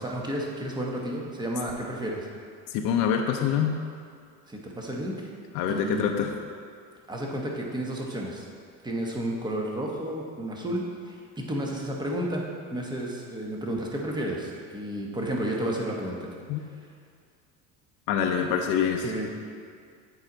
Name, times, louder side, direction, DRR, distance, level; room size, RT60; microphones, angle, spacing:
voice 1, 0.0-2.3 4.5-5.3 5.7-6.1 7.1-8.5 8.8-12.4 12.7-16.2 19.0-19.3, right 1 dB, 10° right, -1 dB, 1.1 m, -32 dB
voice 2, 2.7-3.7 5.5-6.3 16.5-16.6 18.1-19.0, left 8 dB, 60° left, 2 dB, 0.7 m, -25 dB
8.1 x 4.8 x 3.9 m, 2.2 s
supercardioid pair, 105°, 36 cm